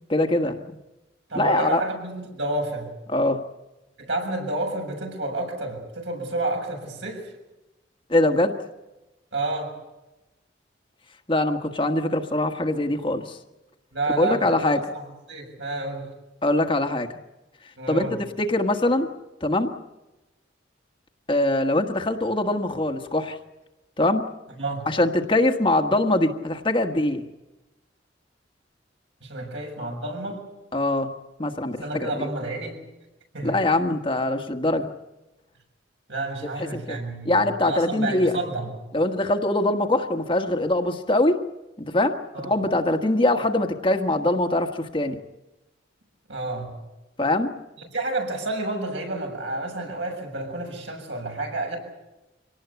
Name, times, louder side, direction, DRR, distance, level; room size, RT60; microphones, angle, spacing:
voice 1, 0.1-0.6 1.3-1.8 3.1-3.4 8.1-8.6 11.3-13.4 14.2-14.8 16.4-17.1 17.9-18.1 18.4-19.1 19.4-19.7 21.3-23.4 24.0-24.2 24.9-27.2 30.7-31.1 31.4-32.3 33.4-34.9 36.6-37.0 37.2-38.4 38.9-41.4 41.9-42.2 42.4-45.2 47.2-47.5, left 1 dB, 30° left, 4 dB, 1.4 m, -23 dB
voice 2, 1.3-2.9 4.0-7.3 9.3-9.8 13.9-16.1 17.8-18.2 24.6-24.9 29.2-30.5 31.8-32.8 33.3-33.6 36.1-38.7 42.3-42.5 46.3-46.7 47.8-51.8, right 2 dB, 75° right, 2 dB, 7.0 m, -30 dB
25.5 x 18.5 x 8.3 m, 1.0 s
head